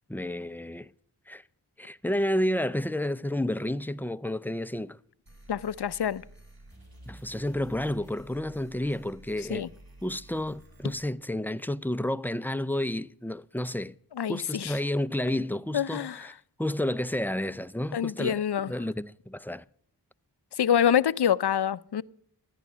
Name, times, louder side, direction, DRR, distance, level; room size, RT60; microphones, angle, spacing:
voice 1, 0.1-0.9 1.3-1.4 1.8-5.0 7.1-9.7 10.0-13.9 14.3-19.6, left 1 dB, 5° left, 0.5 m, -31 dB
sound 1, 5.3-11.1, right 1 dB, 60° right, 4.8 m, -51 dB
voice 2, 5.5-6.2 9.5-9.7 14.2-14.7 15.7-16.2 17.9-18.7 20.6-22.0, left 9 dB, 70° left, 0.6 m, -26 dB
13.5 x 10.0 x 6.2 m
wide cardioid pair, 40°, 41 cm